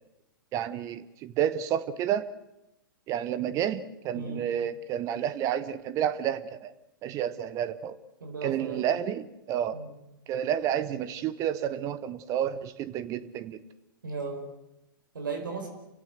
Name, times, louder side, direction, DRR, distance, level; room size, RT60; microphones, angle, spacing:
voice 1, 0.5-2.3 3.1-6.7 7.0-8.0 8.4-9.8 10.3-13.6, right 10 dB, 25° right, 14 dB, 1.2 m, -30 dB
voice 2, 4.1-4.4 8.2-8.8 9.7-9.9 14.0-14.4 15.1-15.7, right 4 dB, 65° right, 3 dB, 5.0 m, -36 dB
30.0 x 16.0 x 8.0 m, 0.87 s
figure-of-eight pair, 105°, 12 cm